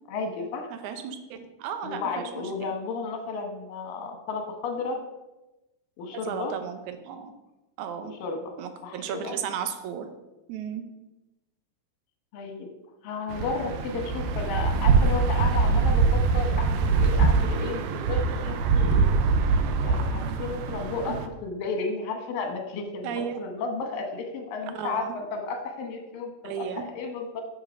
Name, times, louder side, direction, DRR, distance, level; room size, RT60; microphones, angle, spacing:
voice 1, 0.1-0.7 1.8-5.0 6.0-6.6 8.2-8.5 8.8-9.4 12.3-12.7 13.0-19.1 19.8-26.6 26.9-27.4, left 4 dB, 80° left, 3 dB, 3.0 m, -33 dB
voice 2, 0.7-2.5 6.1-7.3 7.8-8.1 8.6-10.1 10.5-10.9 23.0-23.4 24.8-25.1 26.4-26.8, right 8 dB, 70° right, 8 dB, 2.2 m, -34 dB
sound 1, 13.3-21.3, right 4 dB, 85° right, 2.5 m, -23 dB
11.0 x 6.6 x 5.1 m, 1.0 s
omnidirectional pair, 3.9 m